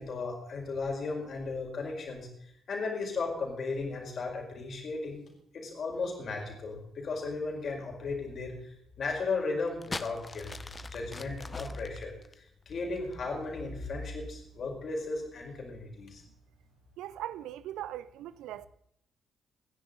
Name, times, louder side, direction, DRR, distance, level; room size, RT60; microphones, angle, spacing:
voice 1, 0.0-2.3 2.7-5.2 5.5-8.6 9.0-10.5 10.8-12.1 12.7-16.2, left 3 dB, 50° left, 4.7 m, -35 dB
sound 1, 9.6-13.3 14.1-14.5, left 3 dB, 30° left, 1.0 m, -42 dB
voice 2, 17.0-18.7, right 12 dB, 65° right, 0.6 m, -40 dB
27.0 x 10.5 x 3.9 m
figure-of-eight pair, 40°, 0 cm